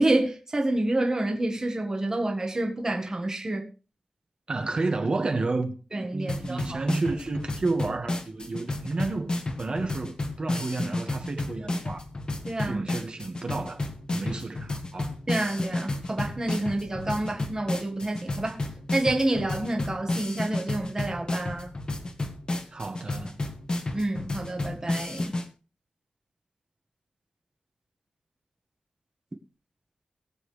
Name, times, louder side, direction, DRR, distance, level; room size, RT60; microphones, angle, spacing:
voice 1, 0.0-3.7 5.9-6.8 12.4-12.8 15.3-18.6 18.9-21.7 23.9-25.4, right 2 dB, 20° right, 1.6 m, -28 dB
voice 2, 4.5-5.7 6.1-12.0 12.6-15.1 22.7-23.4, right 3 dB, 40° right, 1.7 m, -31 dB
sound 1, 6.3-25.5, left 2 dB, 35° left, 1.5 m, -32 dB
21.5 x 7.7 x 3.3 m
wide cardioid pair, 165°, 3 cm